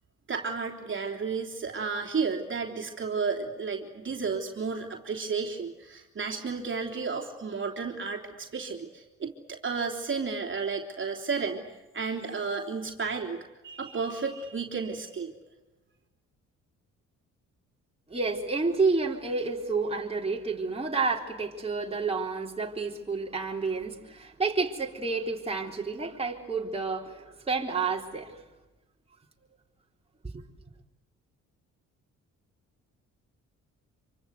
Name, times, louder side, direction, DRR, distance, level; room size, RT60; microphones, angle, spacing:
voice 1, 0.3-11.6 11.9-15.3, right 5 dB, 40° right, 3.3 m, -32 dB
voice 2, 18.1-28.4 30.2-30.4, right 4 dB, 20° right, 3.7 m, -30 dB
26.5 x 24.5 x 8.2 m
cardioid pair, 90°, 30 cm